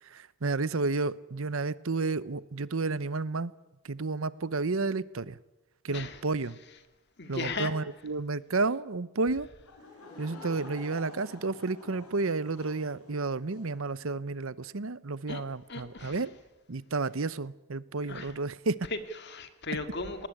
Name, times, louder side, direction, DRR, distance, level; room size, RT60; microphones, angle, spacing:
voice 1, 0.0-3.5 3.8-5.4 5.8-6.6 7.3-9.5 10.2-16.3 16.7-18.8, right 3 dB, 65° right, 18 dB, 0.8 m, -31 dB
voice 2, 5.9-6.2 7.2-7.7 15.3-15.4 15.7-16.2 18.1-18.4 18.9-20.3, left 3 dB, 50° left, 9 dB, 2.2 m, -36 dB
Laughter / Crowd, 9.6-13.8, left 2 dB, 80° left, 5.8 m, -49 dB
19.5 x 19.0 x 10.0 m, 1.0 s
head